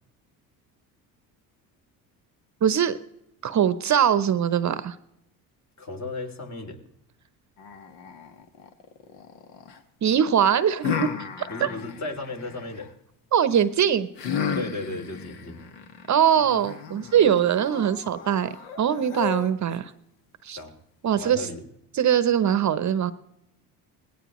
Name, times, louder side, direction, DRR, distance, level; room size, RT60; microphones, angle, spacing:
voice 1, 2.6-3.0 3.4-5.0 10.0-11.1 11.4-11.5 13.3-14.1 16.1-18.5 18.8-19.9 20.4-20.6 21.0-21.5 21.9-23.1, right 9 dB, 40° right, 14 dB, 0.8 m, -22 dB
voice 2, 5.8-6.8 11.5-12.9 14.5-15.6 20.6-20.8 21.2-21.6, left 2 dB, 35° left, 4 dB, 2.9 m, -35 dB
sound 1, 7.6-9.8 10.8-12.9 14.2-19.8, left 7 dB, 70° left, 1.7 m, -34 dB
19.0 x 16.5 x 3.1 m, 0.80 s
supercardioid pair, 75°, 44 cm